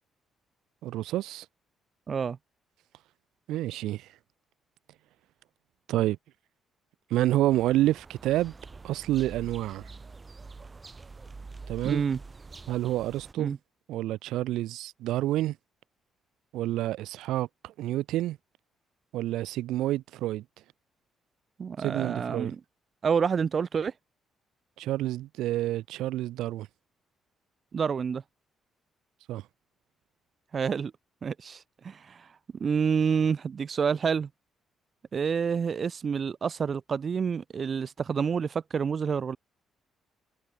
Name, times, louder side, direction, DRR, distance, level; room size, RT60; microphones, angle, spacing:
voice 1, 0.8-1.4 3.5-4.1 5.9-6.2 7.1-8.5 8.8-9.8 11.7-12.0 12.7-13.5 13.9-15.5 16.5-18.4 19.1-20.4 21.8-22.5 24.8-26.7 29.3-29.4, right 15 dB, 90° right, 1.7 m, -28 dB
sound 1, 7.5-13.3, right 4 dB, 30° right, 2.7 m, -46 dB
voice 2, 11.8-12.2 13.4-13.6 21.6-22.6 23.0-23.9 27.7-28.2 30.5-30.9 31.2-32.3 32.6-34.3 35.1-39.4, right 6 dB, 45° right, 1.1 m, -28 dB
cardioid pair, 90°, 0 cm